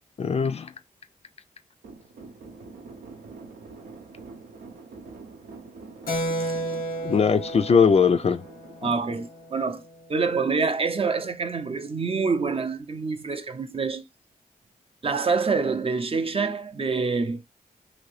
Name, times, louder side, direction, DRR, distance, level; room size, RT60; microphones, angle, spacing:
voice 1, 0.2-0.7 7.0-8.5 8.8-8.9, left 6 dB, 45° left, 0.4 m, -20 dB
sound 1, 1.8-10.1, right 4 dB, 90° right, 0.7 m, -45 dB
Keyboard (musical), 6.1-10.2, right 1 dB, 90° left, 0.8 m, -33 dB
voice 2, 8.8-9.8 10.1-14.0 15.0-17.4, right 4 dB, 40° right, 0.5 m, -26 dB
2.7 x 2.6 x 3.2 m
cardioid pair, 65°, 15 cm